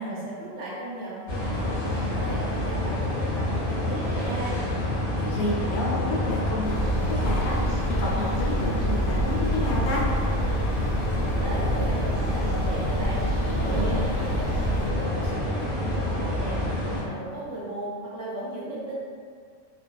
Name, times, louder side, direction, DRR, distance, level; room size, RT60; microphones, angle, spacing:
voice 1, 0.0-4.6 11.2-16.6 16.9-19.0, right 1 dB, 65° right, -7 dB, 0.9 m, -36 dB
sound 1, 1.3-17.0, left 1 dB, 45° left, 0.9 m, -28 dB
voice 2, 5.1-7.6 7.9-10.1, left 1 dB, 75° left, -4 dB, 1.0 m, -30 dB
sound 2, 6.6-14.9, right 1 dB, 85° right, 0.4 m, -29 dB
2.5 x 2.4 x 2.2 m, 2.1 s
omnidirectional pair, 1.5 m